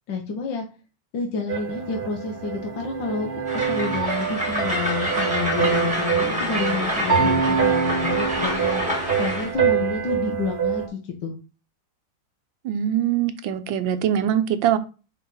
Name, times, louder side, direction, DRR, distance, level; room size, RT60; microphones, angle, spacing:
voice 1, 0.1-0.6 1.1-8.8 9.2-11.3, left 5 dB, 65° left, 1.6 m, -29 dB
sound 1, 1.5-10.9, right 7 dB, 35° right, 1.4 m, -25 dB
Train, 3.5-9.5, equal, 5° right, 1.9 m, -27 dB
voice 2, 12.6-14.8, right 10 dB, 75° right, 1.4 m, -22 dB
4.7 x 4.1 x 5.3 m
omnidirectional pair, 2.2 m